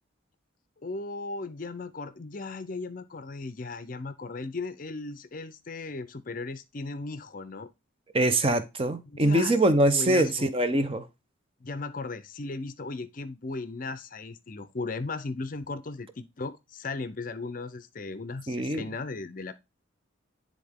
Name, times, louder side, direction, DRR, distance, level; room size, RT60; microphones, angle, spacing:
voice 1, 0.8-7.7 9.1-9.6 9.9-10.5 11.6-19.5, left 3 dB, 40° left, 0.5 m, -36 dB
voice 2, 8.1-11.1 18.5-18.9, right 1 dB, 25° right, 0.6 m, -23 dB
9.9 x 3.6 x 3.5 m
head